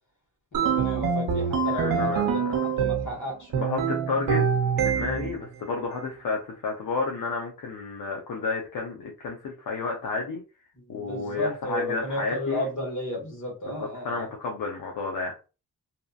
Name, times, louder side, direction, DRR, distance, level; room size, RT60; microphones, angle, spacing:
voice 1, 0.5-3.5 10.9-14.3, left 1 dB, 55° left, 1.5 m, -33 dB
sound 1, 0.5-3.2 3.5-5.4, right 6 dB, 75° right, 0.6 m, -25 dB
voice 2, 1.7-2.4 3.5-4.4 4.8-10.4 10.9-12.7 13.6-15.3, left 4 dB, 75° left, 0.7 m, -31 dB
2.8 x 2.5 x 2.4 m
cardioid pair, 75°, 35 cm